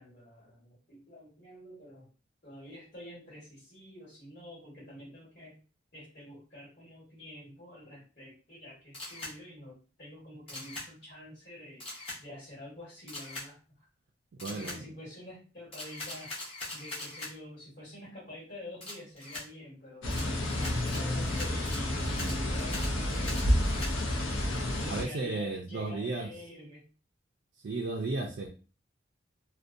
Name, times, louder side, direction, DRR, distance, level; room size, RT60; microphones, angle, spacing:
voice 1, 0.0-2.1 2.4-5.6 5.9-11.8 12.2-13.8 14.5-16.3 16.7-20.1 20.5-23.5 24.8-26.8, left 1 dB, 50° left, -7 dB, 1.2 m, -48 dB
Camera, 8.9-9.3 10.5-10.9 11.8-12.2 13.1-13.5 14.4-14.8 15.7-17.3 18.8-19.5 20.1-23.9, left 2 dB, 30° left, 0.8 m, -41 dB
voice 2, 14.3-14.9 22.0-22.4 24.9-26.3 27.6-28.5, right 3 dB, 65° right, 0 dB, 0.4 m, -34 dB
sound 1, 20.0-25.0, left 1 dB, 90° left, 0.6 m, -30 dB
2.6 x 2.2 x 2.4 m, 0.34 s
head